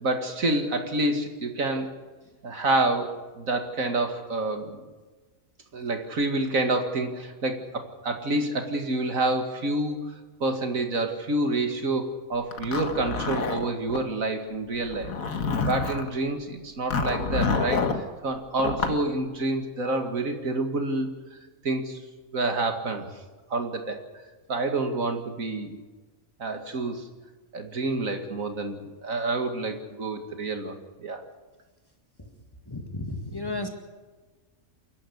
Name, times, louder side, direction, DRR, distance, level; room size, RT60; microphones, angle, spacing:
voice 1, 0.0-1.9 2.4-4.8 5.7-10.1 10.4-15.1 15.6-21.1 21.6-22.0 22.3-23.1 23.5-24.0 24.5-25.8 26.4-27.1 27.5-31.2, right 2 dB, 75° right, 5 dB, 2.5 m, -28 dB
Zipper (clothing), 12.5-14.0 14.9-16.1 16.9-18.0 18.6-19.0, left 4 dB, 80° left, 1.9 m, -28 dB
voice 2, 32.7-33.7, left 2 dB, 15° left, 4 dB, 2.0 m, -33 dB
29.0 x 11.5 x 8.1 m, 1.3 s
omnidirectional pair, 1.4 m